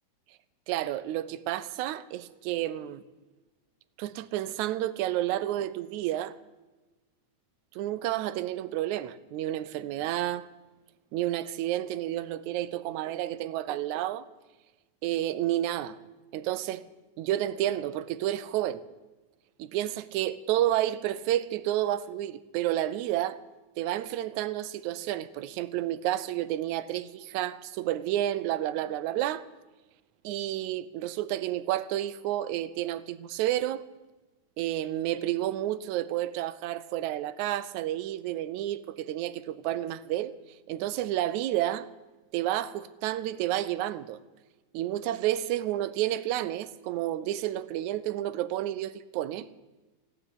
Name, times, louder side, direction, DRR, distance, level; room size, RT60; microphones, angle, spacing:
voice 1, 0.7-3.0 4.0-6.3 7.8-10.5 11.1-14.3 15.0-16.0 16.3-16.8 17.2-18.8 19.6-23.4 23.8-29.4 30.2-33.8 34.6-40.4 40.7-41.9 42.3-44.2 44.7-49.5, right 13 dB, 80° right, 2.0 m, -30 dB
15.0 x 8.9 x 9.8 m
omnidirectional pair, 3.4 m